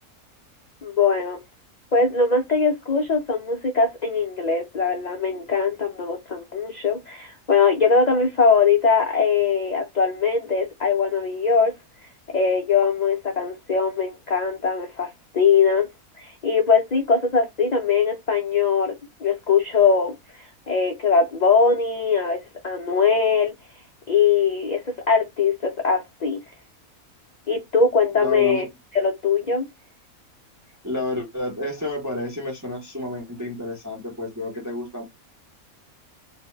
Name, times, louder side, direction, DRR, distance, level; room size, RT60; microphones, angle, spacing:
voice 1, 0.8-1.4 1.9-11.7 12.3-15.1 15.3-15.9 16.2-18.9 19.2-22.4 22.6-23.5 24.1-26.4 27.5-28.7 28.9-29.7, left 5 dB, 75° left, 0.4 m, -21 dB
voice 2, 28.2-28.7 30.8-35.0, left 1 dB, 25° right, 0.4 m, -30 dB
2.6 x 2.1 x 3.1 m
omnidirectional pair, 1.5 m